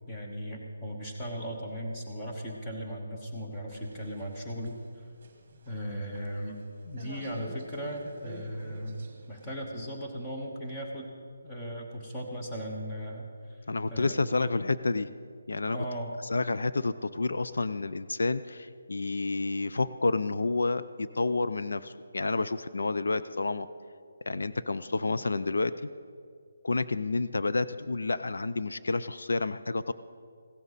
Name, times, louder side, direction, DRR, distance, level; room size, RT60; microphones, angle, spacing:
voice 1, 0.1-4.8 5.7-6.6 6.9-9.0 9.3-11.2 11.4-13.6 13.9-14.1 14.4-14.5 15.7-16.1, equal, 10° left, -2 dB, 1.0 m, -37 dB
sound 1, 3.7-9.6, right 3 dB, 25° right, 1.4 m, -48 dB
voice 2, 13.7-15.1 15.5-15.8 16.3-23.7 24.3-25.7 26.6-29.9, left 3 dB, 75° left, 13 dB, 0.4 m, -29 dB
16.0 x 12.5 x 4.1 m, 2.2 s
hypercardioid pair, 180°, 0 cm